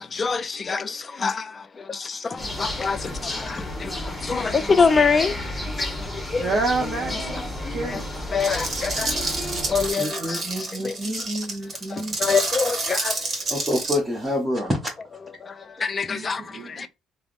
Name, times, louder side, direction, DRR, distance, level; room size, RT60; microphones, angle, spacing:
voice 1, 0.0-6.6 7.3-7.4 7.8-8.0 8.3-11.0 11.9-13.2 15.4-16.9, left 5 dB, 35° left, 0.4 m, -26 dB
sound 1, 2.4-9.9, left 1 dB, 15° left, 1.0 m, -32 dB
voice 2, 6.4-8.1 16.1-16.9, right 3 dB, 65° right, 0.7 m, -28 dB
sound 2, 8.4-14.0, right 2 dB, 40° right, 1.2 m, -29 dB
voice 3, 10.0-12.2 13.5-14.9, equal, 15° right, 0.8 m, -28 dB
3.3 x 2.0 x 2.4 m
cardioid pair, 100°, 0 cm